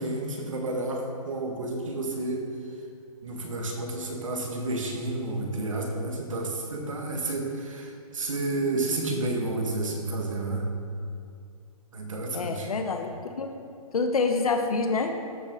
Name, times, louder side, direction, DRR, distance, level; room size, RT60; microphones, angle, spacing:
voice 1, 0.0-2.5 3.2-10.7 11.9-12.7, right 2 dB, 60° right, 1 dB, 1.8 m, -30 dB
voice 2, 12.3-13.5 13.9-15.1, left 4 dB, 70° left, 5 dB, 1.0 m, -27 dB
13.0 x 7.4 x 3.8 m, 2.5 s
hypercardioid pair, 180°, 19 cm